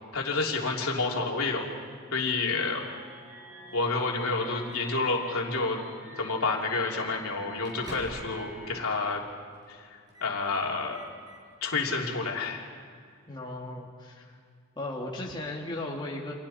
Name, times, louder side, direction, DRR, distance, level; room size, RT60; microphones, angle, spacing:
voice 1, 0.1-1.7 2.1-2.8 3.7-5.8 6.2-9.2 9.7-9.8 10.2-11.0 11.6-12.6, left 3 dB, 75° left, -1 dB, 3.2 m, -29 dB
sound 1, 2.7-8.8, right 1 dB, 80° right, 6.0 m, -47 dB
Microwave oven, 3.7-5.1 6.0-6.2 6.6-6.7 7.1-8.4 8.7-8.8 9.5-9.8 10.1-10.4 10.7-11.8, equal, 20° right, 5.4 m, -49 dB
voice 2, 13.3-14.4 14.8-16.3, left 1 dB, 20° left, -3 dB, 2.4 m, -36 dB
30.0 x 26.5 x 4.4 m, 2.1 s
head